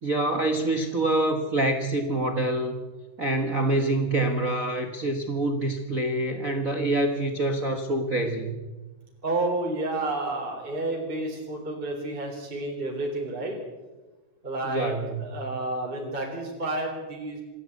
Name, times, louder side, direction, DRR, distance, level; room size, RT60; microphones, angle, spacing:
voice 1, 0.0-2.8 3.2-8.5 14.6-15.2, right 2 dB, 70° right, 5 dB, 0.7 m, -26 dB
voice 2, 9.2-13.6 14.4-14.9 15.2-17.4, right 2 dB, 15° right, 0 dB, 3.8 m, -30 dB
26.5 x 12.0 x 8.4 m, 1.2 s
omnidirectional pair, 3.9 m